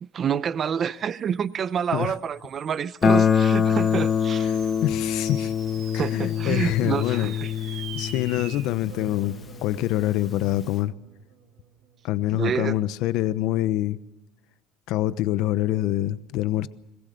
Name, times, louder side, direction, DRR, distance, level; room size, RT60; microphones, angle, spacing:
voice 1, 0.0-4.5 5.9-7.5 12.3-12.8, right 7 dB, 35° right, 0.7 m, -28 dB
sound 1, 1.4-12.1, right 7 dB, 65° right, 5.0 m, -46 dB
Guitar, 3.0-9.7, left 7 dB, 30° left, 1.1 m, -24 dB
voice 2, 4.4-5.5 5.9-7.3 7.6-10.9 12.0-14.0 14.9-16.7, left 14 dB, 65° left, 0.9 m, -26 dB
23.5 x 21.5 x 6.7 m
cardioid pair, 150°, 0 cm